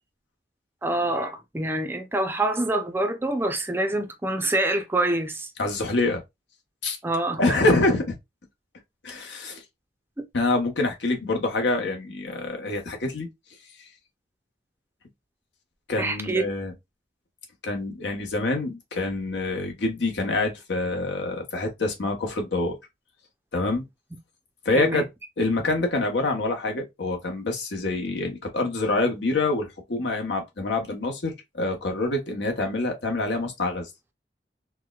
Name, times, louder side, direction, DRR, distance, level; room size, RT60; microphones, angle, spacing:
voice 1, 0.8-5.5 7.0-7.6 16.0-16.5 24.8-25.0, right 2 dB, 15° right, 0.4 m, -26 dB
voice 2, 5.6-6.2 6.8-7.0 7.4-8.1 9.0-9.6 10.3-13.3 15.9-16.7 17.6-22.8 23.5-23.8 24.6-25.0 25.4-33.9, left 2 dB, 80° left, 1.0 m, -26 dB
4.5 x 2.1 x 2.3 m
head